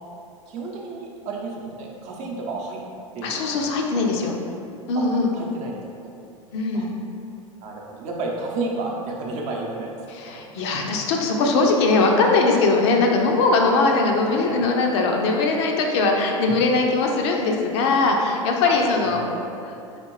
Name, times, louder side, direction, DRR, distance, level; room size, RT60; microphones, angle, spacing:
voice 1, 0.5-2.8 3.1-3.4 3.9-4.3 4.9-5.0 5.4-6.1 6.7-6.9 7.6-9.9 10.2-10.3 13.8-13.9 14.5-14.6 18.6-18.8 19.0-19.4, right 3 dB, 45° right, -1 dB, 0.7 m, -32 dB
voice 2, 3.2-4.4 4.9-5.3 6.5-6.9 10.1-19.2, left 3 dB, 55° left, 1 dB, 0.5 m, -20 dB
4.3 x 3.3 x 3.1 m, 2.6 s
figure-of-eight pair, 80°, 17 cm